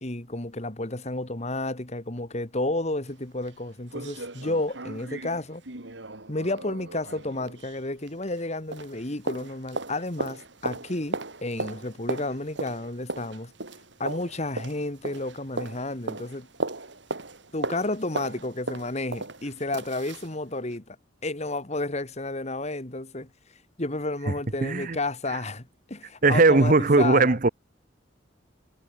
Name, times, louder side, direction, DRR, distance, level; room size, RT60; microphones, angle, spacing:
voice 1, 0.0-5.6 6.3-13.5 14.0-16.5 17.5-21.0 21.2-23.3 23.8-27.3, left 2 dB, 35° left, 2.3 m, -31 dB
sound 1, 3.1-3.2 3.5-3.6 3.9-8.5 8.7-20.3 20.7-20.8, right 2 dB, 75° right, 3.5 m, -37 dB
voice 2, 24.6-25.0 26.2-27.5, right 3 dB, 45° right, 0.9 m, -19 dB
head